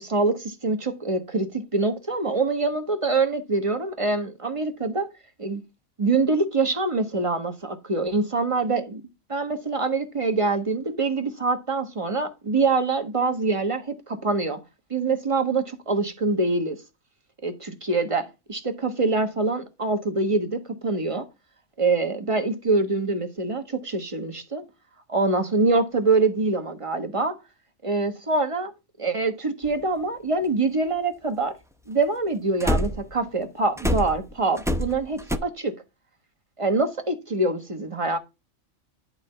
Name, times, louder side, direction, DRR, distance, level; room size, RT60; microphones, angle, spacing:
voice 1, 0.0-5.1 5.4-5.6 6.0-9.0 9.3-14.6 14.9-16.8 17.4-21.3 21.8-24.6 25.1-27.4 27.8-28.7 29.0-31.5 31.9-35.7 36.6-38.2, right 3 dB, 25° right, 1.3 m, -25 dB
sound 1, 29.6-29.7 32.6-33.2 33.8-35.4, equal, 5° right, 0.4 m, -25 dB
11.5 x 3.9 x 5.6 m
omnidirectional pair, 1.4 m